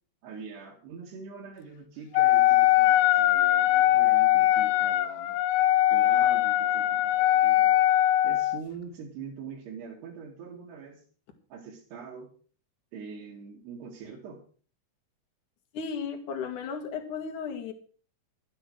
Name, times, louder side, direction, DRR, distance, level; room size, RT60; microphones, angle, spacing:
voice 1, 0.2-5.4 5.9-7.8 8.2-11.0 11.5-12.3 12.9-14.4, right 6 dB, 60° right, -4 dB, 4.1 m, -43 dB
Wind instrument woodwind instrument, 2.2-8.6, left 14 dB, 90° left, 3.4 m, -21 dB
voice 2, 15.7-17.7, left 6 dB, 55° left, 5 dB, 2.5 m, -34 dB
12.0 x 9.0 x 6.4 m, 0.42 s
omnidirectional pair, 5.7 m